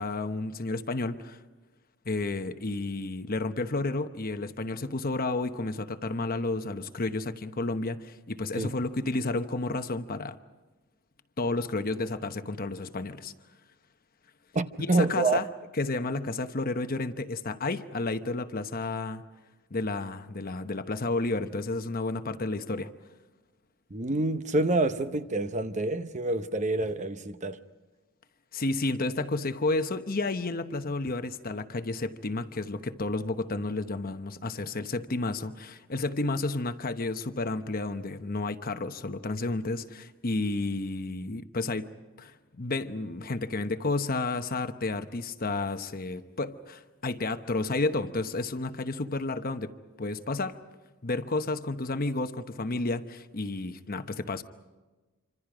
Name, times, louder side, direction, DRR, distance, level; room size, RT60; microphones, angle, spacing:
voice 1, 0.0-1.4 2.0-10.4 11.4-13.3 14.8-15.5 15.8-19.2 19.7-22.9 28.5-41.9 42.2-49.7 50.0-50.6 51.0-54.4, left 2 dB, 40° left, 1.0 m, -31 dB
voice 2, 14.5-15.4 23.9-27.6, right 2 dB, 35° right, 0.8 m, -27 dB
27.0 x 26.0 x 5.0 m
head